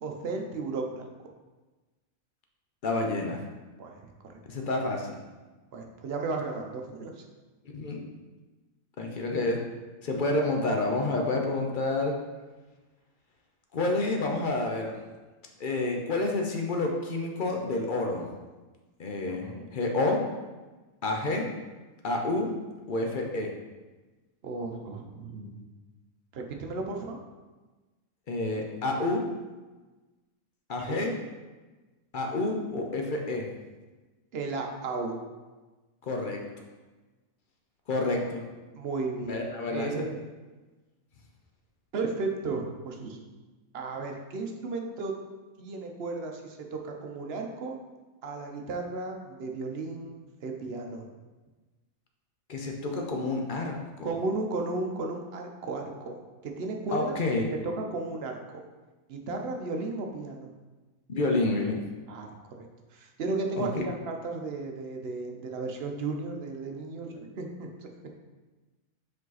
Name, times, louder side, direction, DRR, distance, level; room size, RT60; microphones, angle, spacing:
voice 1, 0.0-1.1 3.8-4.4 5.7-7.3 19.3-19.7 24.4-25.7 26.3-27.2 30.8-31.1 34.3-35.2 38.7-40.2 41.9-43.2 43.7-45.1 45.6-47.8 48.2-51.1 54.0-56.1 56.4-57.2 57.5-58.6 59.1-60.5 62.1-62.7 62.9-67.9, right 3 dB, 55° right, 2 dB, 0.8 m, -34 dB
voice 2, 2.8-3.4 4.5-5.2 7.7-8.1 9.0-9.6 10.0-12.1 13.7-14.9 15.6-18.3 19.0-20.2 21.0-21.5 22.0-22.5 22.9-23.5 28.3-29.3 30.7-31.2 32.1-33.4 36.1-36.4 37.9-38.4 39.3-40.0 52.5-54.1 56.9-57.4 61.1-61.8 63.6-63.8, left 2 dB, 50° left, 1 dB, 0.7 m, -29 dB
5.0 x 4.8 x 4.0 m, 1.2 s
omnidirectional pair, 1.5 m